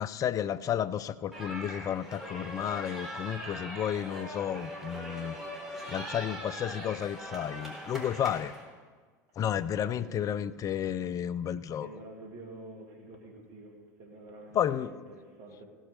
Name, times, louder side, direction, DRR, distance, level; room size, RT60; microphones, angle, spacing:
voice 1, 0.0-5.4 5.9-8.5 9.4-11.9 14.5-15.0, left 9 dB, 35° left, 16 dB, 0.5 m, -32 dB
sound 1, 1.3-8.6, equal, 5° right, 4.1 m, -41 dB
voice 2, 9.7-10.4 11.8-13.7 14.0-15.7, right 2 dB, 55° right, 1 dB, 2.7 m, -47 dB
16.5 x 6.4 x 6.6 m, 1.5 s
hypercardioid pair, 80°, 9 cm